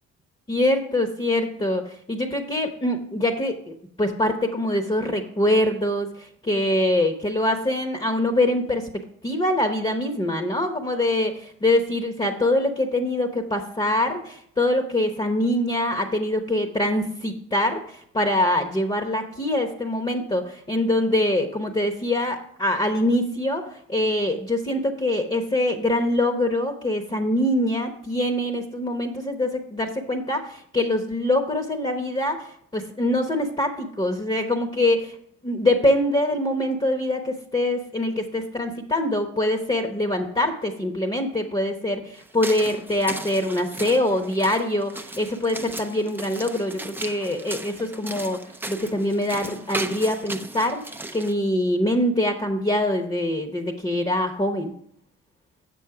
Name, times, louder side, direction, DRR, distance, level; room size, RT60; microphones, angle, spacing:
voice 1, 0.5-8.9 9.2-35.2 35.4-48.4 48.7-50.8 51.1-54.7, left 1 dB, 20° left, 5 dB, 0.9 m, -24 dB
sound 1, 42.2-51.3, right 2 dB, 5° right, 0.5 m, -36 dB
7.8 x 6.3 x 4.8 m, 0.67 s
cardioid pair, 90°, 30 cm